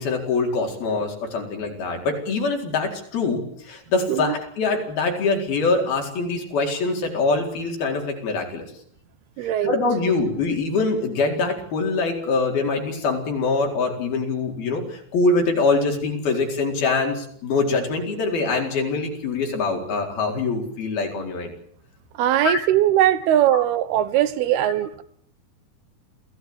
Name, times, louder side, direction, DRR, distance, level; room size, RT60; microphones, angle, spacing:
voice 1, 0.0-8.7 9.6-21.5 22.4-22.6 23.5-23.6, left 3 dB, 75° left, 6.2 m, -24 dB
voice 2, 9.4-9.8 22.1-25.0, right 12 dB, 90° right, 3.2 m, -20 dB
27.5 x 16.5 x 8.9 m
omnidirectional pair, 4.4 m